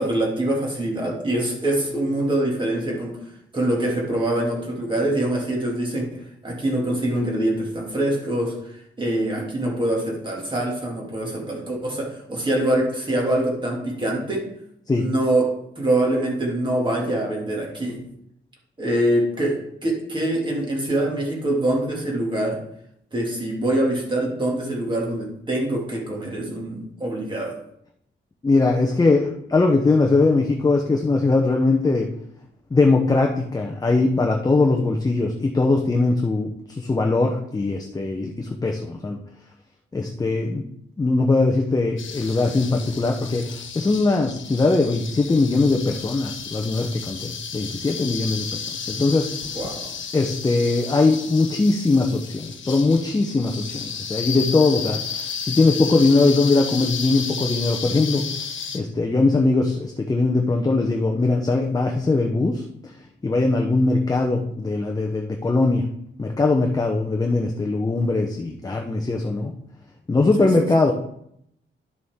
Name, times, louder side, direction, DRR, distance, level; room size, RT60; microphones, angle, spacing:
voice 1, 0.0-3.2 3.5-14.5 15.0-18.0 18.8-22.6 23.1-27.6 49.5-49.9 70.4-70.5, right 1 dB, 25° right, -2 dB, 2.2 m, -24 dB
voice 2, 28.4-32.1 32.7-39.2 39.9-40.7 41.0-43.5 43.7-49.3 50.1-55.0 55.4-58.3 58.7-62.9 63.2-65.9 66.2-69.5 70.1-70.9, left 3 dB, 20° left, 2 dB, 0.7 m, -21 dB
sound 1, 42.0-58.8, left 6 dB, 70° left, 1.3 m, -33 dB
11.0 x 6.8 x 3.6 m, 0.74 s
wide cardioid pair, 165°, 20 cm